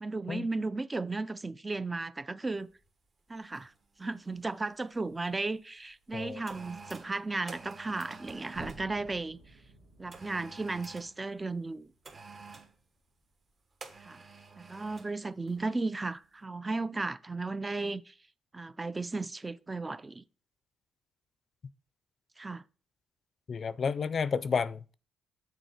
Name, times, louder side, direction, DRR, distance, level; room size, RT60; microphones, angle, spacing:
voice 1, 0.0-2.7 3.3-3.7 4.0-9.6 10.0-11.9 14.0-14.2 14.6-18.1 18.5-20.2 22.4-22.6, right 3 dB, 20° right, 0.4 m, -35 dB
sound 1, 2.7-2.9 3.5-5.3 5.9-8.9 10.1-11.2 12.0-12.8 13.8-15.2 15.5-15.7, right 4 dB, 40° right, 1.2 m, -49 dB
sound 2, 8.5-12.5, right 2 dB, 70° right, 2.1 m, -53 dB
voice 2, 23.5-24.9, left 6 dB, 45° left, 0.4 m, -31 dB
6.7 x 4.0 x 4.5 m
cardioid pair, 80°, 0 cm